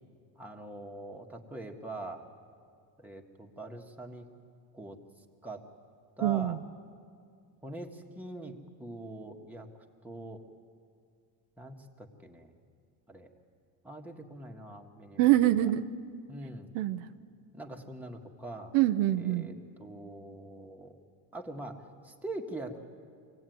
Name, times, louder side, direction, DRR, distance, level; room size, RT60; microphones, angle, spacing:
voice 1, 0.4-2.3 3.0-4.3 4.7-5.0 5.4-5.6 6.2-6.6 7.6-8.5 8.8-9.7 10.0-10.4 11.6-12.5 13.1-13.3 13.8-15.3 15.6-15.7 16.3-16.7 17.5-18.7 19.2-19.5 19.8-21.0 21.3-22.8, right 2 dB, 5° right, 1 dB, 1.9 m, -43 dB
voice 2, 6.2-6.6 15.2-15.9 16.7-17.1 18.7-19.5, right 14 dB, 80° right, 9 dB, 1.0 m, -25 dB
24.5 x 17.5 x 9.4 m, 2.2 s
cardioid pair, 130°, 42 cm